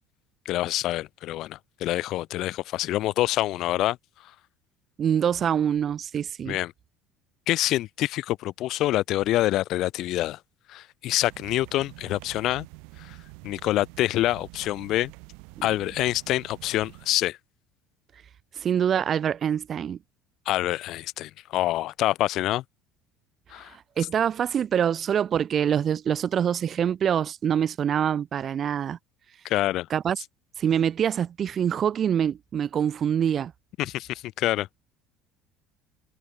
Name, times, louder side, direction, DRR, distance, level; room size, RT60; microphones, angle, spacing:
voice 1, 0.5-4.0 6.5-6.7 7.5-10.4 10.7-12.7 13.0-13.2 13.4-15.1 15.6-17.4 20.5-22.6 23.5-23.7 29.4-29.9 33.8-34.7, left 15 dB, 60° left, 0.5 m, -26 dB
voice 2, 5.0-6.6 15.6-15.7 18.6-20.0 24.0-29.0 29.9-30.2 30.6-33.5, right 8 dB, 40° right, 2.3 m, -25 dB
sound 1, 11.3-17.1, right 36 dB, 80° right, 3.4 m, -47 dB
supercardioid pair, 110°, 0 cm